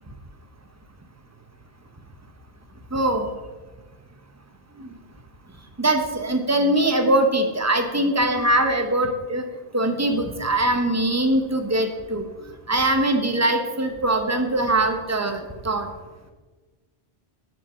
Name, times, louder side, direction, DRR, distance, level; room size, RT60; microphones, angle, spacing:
voice 1, 2.9-3.3 4.8-4.9 5.8-9.5 9.7-12.2 12.7-15.9, right 1 dB, 15° right, 5 dB, 0.8 m, -22 dB
7.3 x 5.5 x 7.0 m, 1.3 s
omnidirectional pair, 1.1 m